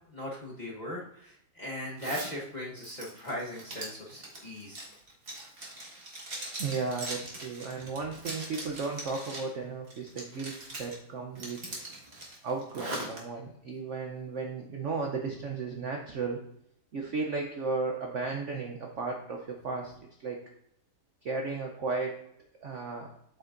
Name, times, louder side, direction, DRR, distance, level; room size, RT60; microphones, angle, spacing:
voice 1, 0.1-4.8, left 1 dB, 30° left, -4 dB, 1.0 m, -39 dB
Zipper (clothing), 2.0-2.3 2.8-9.5 9.9-10.9 11.3-13.2, right 1 dB, 30° right, 1.6 m, -41 dB
voice 2, 6.6-11.6 12.4-16.4 16.9-19.9 20.2-20.4 21.2-22.2 22.6-23.1, right 4 dB, 60° right, 1 dB, 0.8 m, -34 dB
8.0 x 6.7 x 2.5 m, 0.73 s
omnidirectional pair, 2.1 m